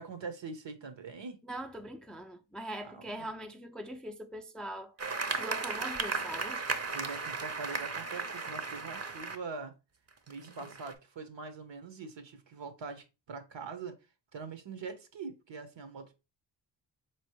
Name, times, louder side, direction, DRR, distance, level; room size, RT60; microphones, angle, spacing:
voice 1, 0.0-1.4 2.8-3.3 6.9-9.7 10.3-14.0 14.3-16.1, right 4 dB, 65° right, 1.0 m, -43 dB
voice 2, 1.5-4.9 5.4-6.6, right 1 dB, ahead, 0.4 m, -42 dB
sound 1, 5.0-9.4 10.1-10.9, right 4 dB, 30° right, 0.7 m, -35 dB
4.2 x 3.1 x 3.0 m
cardioid pair, 50°, 47 cm